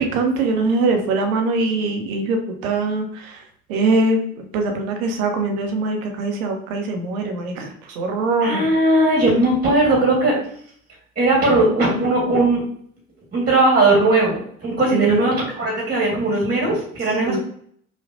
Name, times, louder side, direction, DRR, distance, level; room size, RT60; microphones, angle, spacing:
voice 1, 0.0-3.4 3.7-4.2 4.5-7.7 8.0-8.6 14.9-15.2 17.3-17.4, right 3 dB, 65° right, 3 dB, 0.9 m, -22 dB
voice 2, 8.4-10.4 11.2-12.6 13.3-17.4, right 2 dB, 20° right, -2 dB, 1.6 m, -18 dB
5.1 x 2.4 x 2.6 m, 0.62 s
figure-of-eight pair, 65°, 46 cm